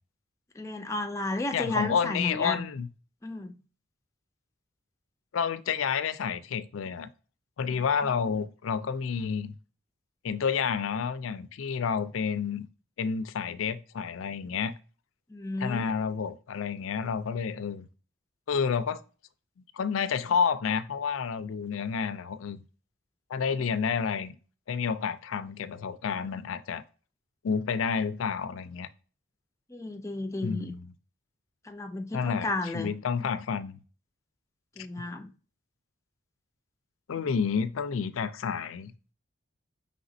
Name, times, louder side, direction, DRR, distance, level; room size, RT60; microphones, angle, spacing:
voice 1, 0.6-2.6 3.2-3.6 8.0-8.3 15.3-15.9 29.7-30.7 31.6-32.9 34.8-35.3, left 2 dB, 15° left, 0.4 m, -33 dB
voice 2, 1.5-2.9 5.3-7.1 7.6-9.5 10.2-12.7 13.0-14.7 15.6-17.9 18.5-19.0 19.7-22.6 23.3-24.4 24.7-26.8 27.4-28.9 30.4-30.9 32.1-33.8 37.1-38.9, left 6 dB, 85° left, 0.4 m, -30 dB
5.0 x 3.4 x 2.6 m
head